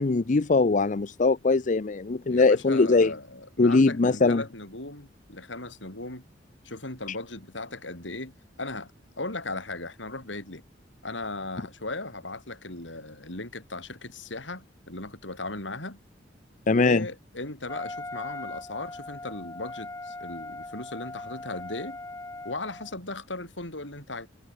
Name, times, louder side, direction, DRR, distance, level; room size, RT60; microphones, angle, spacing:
voice 1, 0.0-3.1 3.6-4.4 16.7-17.1, left 3 dB, 45° left, 0.6 m, -21 dB
voice 2, 2.3-6.2 6.6-8.3 8.6-8.9 9.2-10.6 11.0-16.0 16.7-22.0 22.4-24.3, left 2 dB, 90° left, 7.8 m, -37 dB
Wind instrument woodwind instrument, 17.7-22.9, left 2 dB, 15° left, 1.8 m, -40 dB
head